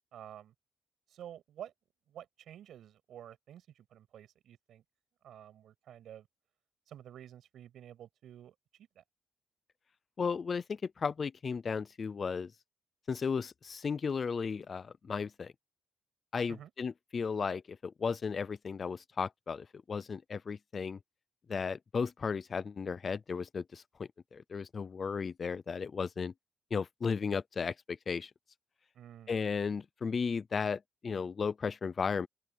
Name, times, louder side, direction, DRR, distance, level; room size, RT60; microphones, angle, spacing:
voice 1, 0.1-0.5 1.1-1.7 2.1-4.8 5.2-6.3 6.9-9.0 16.5-16.7 28.9-29.4, right 10 dB, 70° right, 7.2 m, -50 dB
voice 2, 10.2-12.5 13.1-15.5 16.3-21.0 21.5-26.3 26.7-28.3 29.3-32.3, left 5 dB, 30° left, 0.4 m, -35 dB
open air
wide cardioid pair, 175°, 0 cm